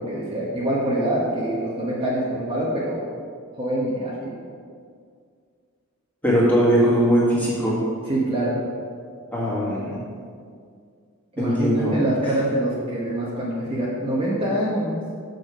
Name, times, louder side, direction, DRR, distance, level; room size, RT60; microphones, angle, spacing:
voice 1, 0.0-3.0 3.6-4.3 8.1-8.6 11.3-15.0, right 1 dB, 25° right, -6 dB, 1.2 m, -25 dB
voice 2, 6.2-7.8 9.3-10.0 11.4-12.0, equal, 10° left, -7 dB, 2.0 m, -20 dB
6.8 x 6.7 x 5.1 m, 2.2 s
head